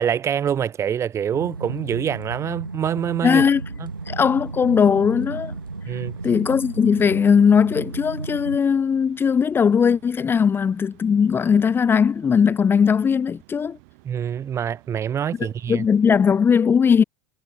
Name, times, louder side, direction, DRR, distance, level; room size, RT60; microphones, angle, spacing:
voice 1, 0.0-3.4 3.8-3.9 5.9-6.1 14.0-15.8, right 8 dB, 25° right, 1.1 m, -25 dB
sound 1, 1.3-8.6, right 3 dB, 85° right, 0.9 m, -33 dB
voice 2, 3.2-3.6 4.1-5.5 6.2-13.8 15.4-17.0, left 6 dB, 20° left, 0.8 m, -19 dB
sound 2, 3.8-16.5, right 31 dB, 50° right, 6.1 m, -54 dB
figure-of-eight pair, 80°, 11 cm